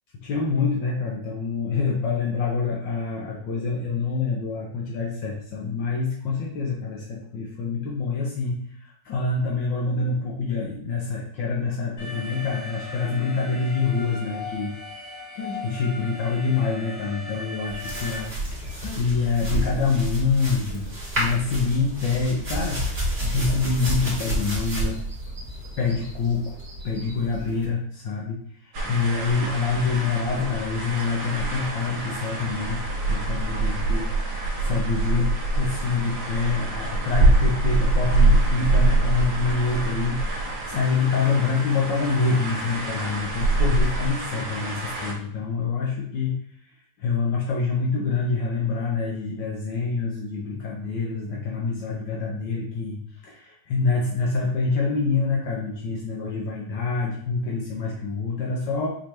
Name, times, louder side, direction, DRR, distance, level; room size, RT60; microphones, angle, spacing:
voice 1, 0.2-14.8 15.3-20.9 21.2-25.0 25.8-26.6 26.8-32.8 33.1-46.3 47.0-58.9, left 4 dB, 70° left, -3 dB, 1.3 m, -26 dB
Alarm, 12.0-18.2, left 3 dB, 50° left, 2.6 m, -38 dB
sound 1, 17.7-27.7, right 1 dB, 30° right, 2.0 m, -30 dB
sound 2, 28.7-45.1, right 3 dB, 65° right, 1.7 m, -25 dB
5.2 x 3.2 x 2.9 m, 0.68 s
omnidirectional pair, 2.3 m